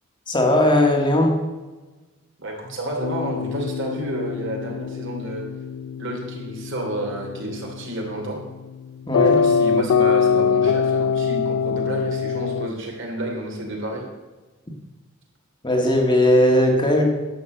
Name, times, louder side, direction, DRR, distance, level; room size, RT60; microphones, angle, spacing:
voice 1, 0.3-1.3 9.1-9.4 15.6-17.0, left 1 dB, 20° left, 1 dB, 1.6 m, -18 dB
voice 2, 2.4-5.4 6.0-8.4 9.2-14.0, right 1 dB, 55° right, 1 dB, 3.0 m, -30 dB
sound 1, 3.0-12.7, left 6 dB, 75° left, 0.3 m, -23 dB
11.0 x 6.9 x 7.8 m, 1.2 s
head